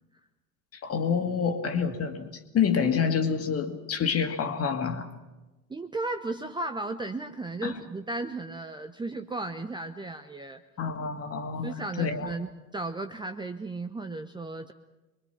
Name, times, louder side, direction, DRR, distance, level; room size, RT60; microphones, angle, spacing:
voice 1, 0.7-5.1 7.6-7.7 10.8-12.3, left 6 dB, 35° left, 6 dB, 2.2 m, -28 dB
voice 2, 5.7-10.6 11.6-14.7, right 2 dB, 10° right, 7 dB, 0.8 m, -35 dB
24.5 x 23.0 x 5.9 m, 1.1 s
figure-of-eight pair, 70°, 43 cm